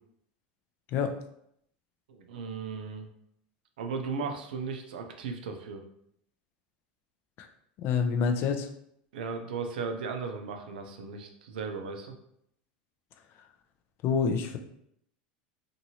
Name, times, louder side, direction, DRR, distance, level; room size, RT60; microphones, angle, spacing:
voice 1, 2.1-3.1 3.8-5.8 9.1-12.1, right 5 dB, 85° right, 5 dB, 0.5 m, -36 dB
voice 2, 7.8-8.7 14.0-14.6, left 6 dB, 50° left, 5 dB, 0.4 m, -27 dB
2.8 x 2.6 x 2.8 m, 0.72 s
supercardioid pair, 115°, 5 cm